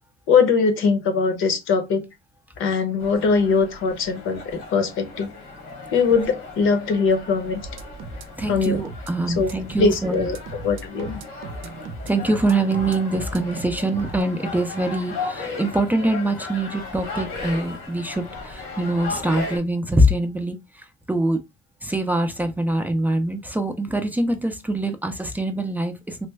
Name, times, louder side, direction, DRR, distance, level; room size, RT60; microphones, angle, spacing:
voice 1, 0.3-2.0 2.6-5.3 5.9-7.6 8.5-8.8 9.3-11.2, left 5 dB, 70° left, 0.8 m, -21 dB
sound 1, 3.0-19.6, left 3 dB, 90° left, 1.3 m, -36 dB
sound 2, 7.6-14.2, right 2 dB, 70° right, 0.6 m, -37 dB
voice 2, 8.4-10.3 12.1-21.4 21.8-26.3, right 1 dB, 10° right, 0.4 m, -24 dB
3.3 x 2.0 x 3.3 m
cardioid pair, 135°, 21 cm